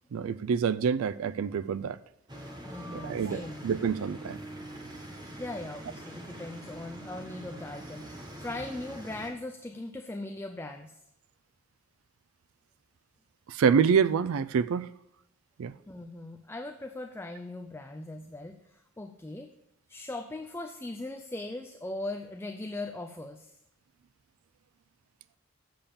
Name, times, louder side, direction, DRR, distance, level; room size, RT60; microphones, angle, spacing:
voice 1, 0.1-2.0 2.9-4.4 13.5-14.9 15.6-15.7, right 6 dB, 85° right, 0.4 m, -26 dB
sound 1, 2.3-9.3, right 1 dB, 20° right, 1.3 m, -44 dB
voice 2, 2.6-3.6 5.4-11.0 15.9-19.5 19.9-23.6, left 2 dB, 10° left, 0.4 m, -39 dB
7.7 x 7.0 x 6.9 m
head